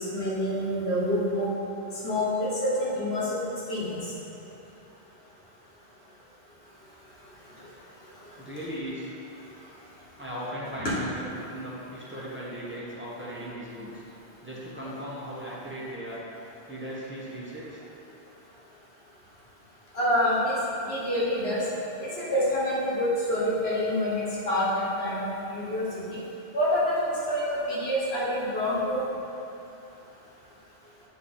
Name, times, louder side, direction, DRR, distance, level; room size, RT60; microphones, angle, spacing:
voice 1, 0.1-1.5 2.0-3.2 3.7-4.0 10.8-10.9 19.9-20.5 20.9-21.6 22.0-25.9 26.5-27.0 27.3-29.0, left 1 dB, 70° left, -7 dB, 1.6 m, -27 dB
voice 2, 8.3-9.1 10.2-14.0 14.4-16.2 16.7-17.8, equal, 10° right, -8 dB, 1.1 m, -37 dB
8.5 x 3.2 x 4.3 m, 3.0 s
omnidirectional pair, 1.1 m